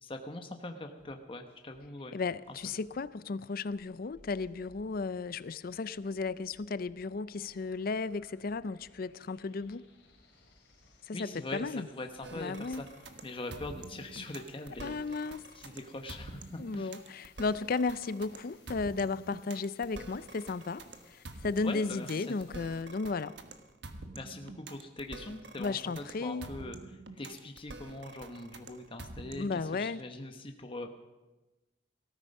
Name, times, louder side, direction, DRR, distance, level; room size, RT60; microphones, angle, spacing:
voice 1, 0.0-2.1 2.5-2.6 11.1-12.9 13.2-15.2 15.5-16.9 21.6-22.3 24.1-26.8 27.2-30.9, left 2 dB, 30° left, 5 dB, 1.0 m, -42 dB
sound 1, 1.0-1.1 1.5-1.9 2.2-3.1 3.4-3.8 4.2-5.0 5.4-5.8 6.1-7.0 7.4-7.7 8.1-9.0 9.3-9.7 10.1-10.9 11.3-11.7 12.0-12.9 13.3-13.6 14.0-14.9 15.2-15.6 16.0-16.5, equal, 15° right, 5.1 m, -69 dB
voice 2, 2.1-9.8 11.1-11.9 12.3-12.8 14.8-15.4 16.6-20.8 21.1-23.4 25.6-26.5 29.4-30.0, left 4 dB, 55° left, 17 dB, 0.5 m, -34 dB
sound 2, 3.7-22.8, left 4 dB, 70° left, 3.7 m, -64 dB
sound 3, 12.2-29.6, right 2 dB, 70° right, 1.3 m, -47 dB
18.0 x 13.5 x 5.4 m, 1.1 s
head